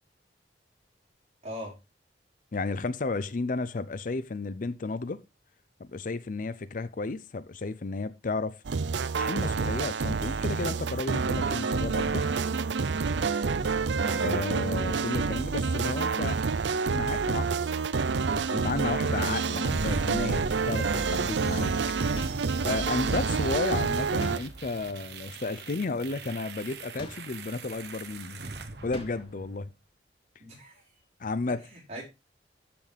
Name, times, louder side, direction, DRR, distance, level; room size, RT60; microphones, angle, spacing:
voice 1, 1.4-1.8 14.0-14.4 23.2-23.5 30.4-30.8 31.7-32.0, equal, 40° right, 4.7 m, -40 dB
voice 2, 2.5-5.2 5.8-8.6 9.2-12.3 14.2-16.4 16.9-17.7 18.1-21.7 22.6-28.4 28.8-29.7 31.2-31.7, left 3 dB, 50° left, 0.5 m, -33 dB
sound 1, 8.6-24.4, right 4 dB, 85° right, 0.5 m, -28 dB
sound 2, 19.7-29.6, right 3 dB, 65° right, 1.1 m, -39 dB
sound 3, 22.1-22.7 24.2-24.7 27.0-27.5 28.9-29.4, equal, 30° left, 3.3 m, -43 dB
13.5 x 6.1 x 3.4 m
head